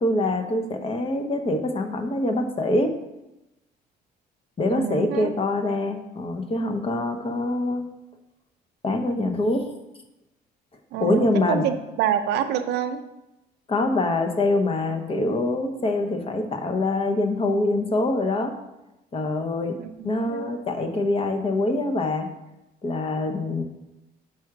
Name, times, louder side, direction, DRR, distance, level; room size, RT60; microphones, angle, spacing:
voice 1, 0.0-2.9 4.6-7.9 8.8-9.7 11.0-11.7 13.7-18.5 19.1-19.8 20.0-22.3 22.8-23.6, left 2 dB, 35° left, 5 dB, 0.9 m, -24 dB
voice 2, 4.7-5.3 10.9-13.0 19.8-20.6, right 9 dB, 80° right, 8 dB, 0.6 m, -27 dB
6.0 x 4.8 x 5.9 m, 0.95 s
cardioid pair, 110°, 17 cm